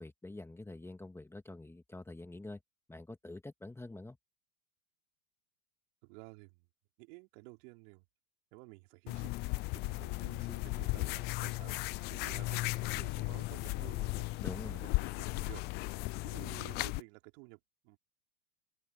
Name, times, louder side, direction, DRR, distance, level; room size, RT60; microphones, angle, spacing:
voice 1, 0.0-2.6 2.9-4.2 14.4-14.8, left 2 dB, 5° left, 2.2 m, -46 dB
voice 2, 6.0-6.7 7.0-8.0 8.5-9.3 9.7-14.3 14.6-18.0, right 29 dB, 55° right, 4.0 m, -53 dB
sound 1, 9.1-17.0, left 23 dB, 25° left, 0.4 m, -36 dB
open air
hypercardioid pair, 110°, 43 cm